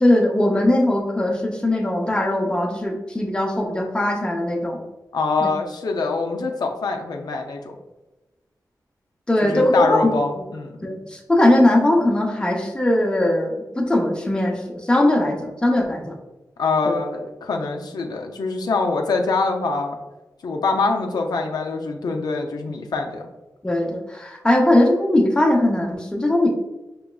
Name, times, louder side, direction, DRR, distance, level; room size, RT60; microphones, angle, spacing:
voice 1, 0.0-4.8 5.4-5.5 9.3-10.4 10.8-16.1 16.9-17.0 23.6-26.5, left 1 dB, 15° left, 1 dB, 0.6 m, -20 dB
voice 2, 5.1-7.8 9.4-10.7 16.6-20.0 20.4-23.2, left 3 dB, 75° left, 2 dB, 0.4 m, -24 dB
4.8 x 3.0 x 2.2 m, 1.1 s
wide cardioid pair, 100°, 7 cm